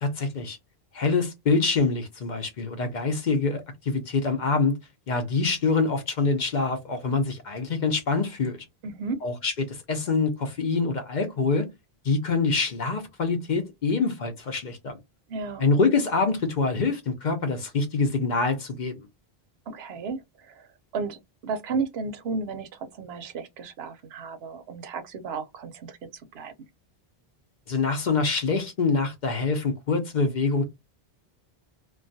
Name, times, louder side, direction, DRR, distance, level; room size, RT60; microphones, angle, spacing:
voice 1, 0.0-0.6 0.9-4.8 5.1-8.7 9.2-11.7 12.0-15.0 15.6-19.1 27.7-30.6, left 4 dB, 55° left, 0.6 m, -25 dB
voice 2, 8.8-9.3 15.3-15.6 19.7-26.5, right 4 dB, 80° right, 0.8 m, -34 dB
2.3 x 2.2 x 2.6 m
omnidirectional pair, 1.0 m